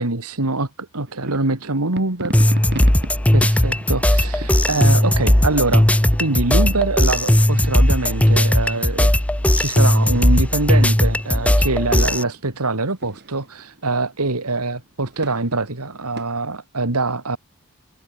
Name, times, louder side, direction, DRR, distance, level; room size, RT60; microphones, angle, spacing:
voice 1, 0.0-2.4 3.3-9.1 9.5-17.4, right 2 dB, 85° right, 2.5 m, -24 dB
sound 1, 1.1-16.3, right 1 dB, 50° right, 6.1 m, -39 dB
sound 2, 2.3-12.2, left 1 dB, 5° left, 0.6 m, -17 dB
head